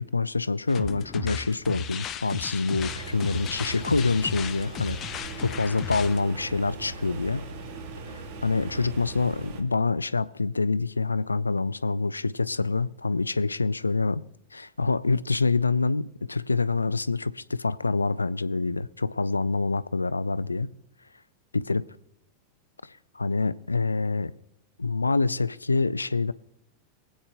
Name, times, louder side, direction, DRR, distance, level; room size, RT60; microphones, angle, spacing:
voice 1, 0.0-5.0 5.4-7.5 8.1-14.2 14.5-20.7 21.5-21.9 22.8-24.3 24.8-26.3, left 3 dB, 80° left, 0.3 m, -26 dB
sound 1, 0.7-6.2, left 8 dB, 30° left, 0.5 m, -36 dB
sound 2, 2.8-9.6, right 3 dB, 45° right, 1.4 m, -39 dB
23.0 x 8.6 x 2.3 m
figure-of-eight pair, 90°, 0 cm